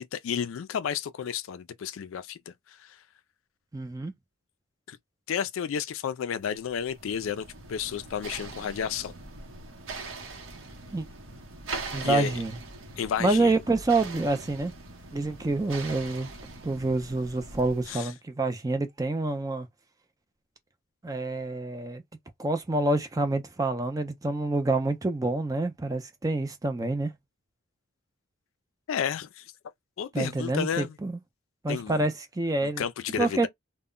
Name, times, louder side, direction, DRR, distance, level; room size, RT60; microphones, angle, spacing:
voice 1, 0.0-3.0 4.9-5.0 5.3-9.1 12.0-12.3 13.0-13.6 17.9-18.1 28.9-29.5 30.0-31.0 31.7-32.1 32.6-33.5, left 8 dB, 70° left, 0.3 m, -32 dB
voice 2, 3.7-4.1 10.9-11.1 11.9-12.6 13.2-14.7 15.1-16.3 16.6-19.7 21.0-22.0 22.4-27.1 30.1-31.2 31.6-32.8 33.2-33.5, right 2 dB, 15° right, 0.4 m, -27 dB
sound 1, 6.5-18.0, right 3 dB, 70° right, 0.8 m, -42 dB
2.1 x 2.1 x 3.6 m
head